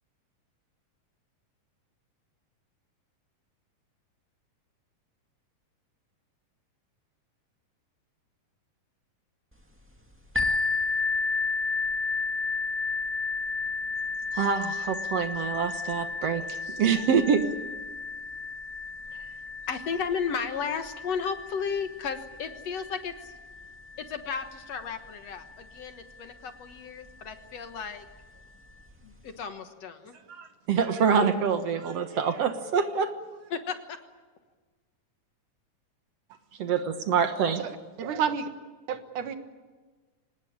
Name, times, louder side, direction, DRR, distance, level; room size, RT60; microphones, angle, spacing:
sound 1, 10.3-25.9 26.7-26.8 27.3-27.4, left 4 dB, 5° right, 1.5 m, -33 dB
voice 1, 14.3-17.4 30.3-33.1 36.6-37.6, right 6 dB, 60° right, 8 dB, 2.2 m, -26 dB
voice 2, 19.7-23.3 24.0-28.1 29.0-30.1 33.5-34.0, left 6 dB, 60° left, 8 dB, 2.3 m, -34 dB
voice 3, 37.6-38.5 38.9-39.4, right 7 dB, 75° right, 8 dB, 3.0 m, -30 dB
25.5 x 19.5 x 8.8 m, 1.4 s
omnidirectional pair, 3.6 m